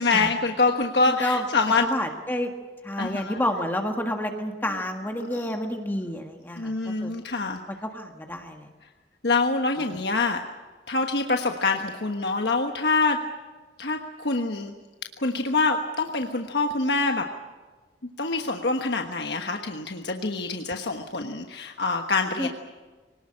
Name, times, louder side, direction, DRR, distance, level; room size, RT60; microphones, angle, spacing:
voice 1, 0.0-1.8 3.0-3.4 5.4-5.5 6.6-7.6 9.2-10.4 10.9-13.2 13.8-14.7 15.2-17.2 18.2-22.5, left 3 dB, 65° left, 4 dB, 1.3 m, -25 dB
voice 2, 1.1-1.4 1.8-2.5 2.8-7.1 7.7-8.7 9.8-10.0 22.4-22.5, left 1 dB, 10° left, 3 dB, 1.6 m, -29 dB
24.5 x 19.0 x 8.7 m, 1.3 s
head